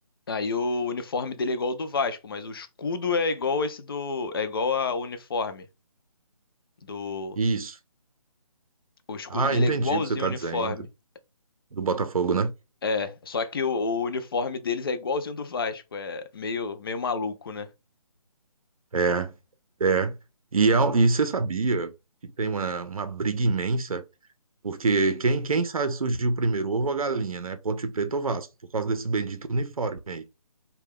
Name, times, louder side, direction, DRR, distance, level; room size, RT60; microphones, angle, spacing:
voice 1, 0.3-5.7 6.9-7.4 9.1-10.9 12.8-17.7, left 4 dB, 40° left, 0.4 m, -29 dB
voice 2, 7.4-7.8 9.3-10.8 11.7-12.5 18.9-19.3 19.8-20.1 20.5-21.9 22.2-24.0 24.6-28.5 28.7-30.2, right 3 dB, 70° right, 0.6 m, -25 dB
2.8 x 2.2 x 3.4 m
figure-of-eight pair, 150°, 19 cm